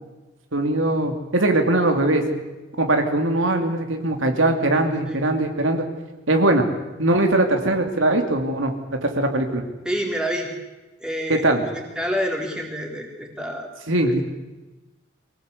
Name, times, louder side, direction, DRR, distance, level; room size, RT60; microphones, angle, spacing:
voice 1, 0.5-2.2 2.8-5.8 6.3-6.6 7.0-8.7 9.0-9.6 11.3-11.6 13.9-14.2, right 2 dB, 75° right, 4 dB, 2.7 m, -20 dB
voice 2, 9.8-10.5 11.0-13.7 14.0-14.1, equal, 5° right, 0 dB, 3.9 m, -28 dB
24.5 x 18.0 x 8.3 m, 1.1 s
head